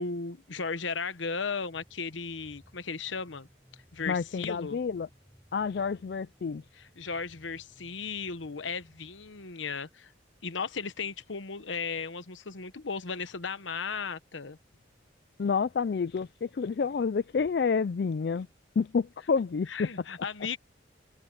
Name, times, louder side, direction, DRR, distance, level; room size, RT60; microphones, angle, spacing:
voice 1, 0.0-3.5 3.9-4.8 6.7-10.1 10.4-14.6 19.7-20.6, left 5 dB, 85° left, 1.1 m, -36 dB
sound 1, 1.7-9.5, equal, ahead, 4.5 m, -61 dB
voice 2, 4.1-5.1 5.5-6.6 15.4-18.5 18.8-19.9, left 5 dB, 60° left, 0.4 m, -29 dB
open air
head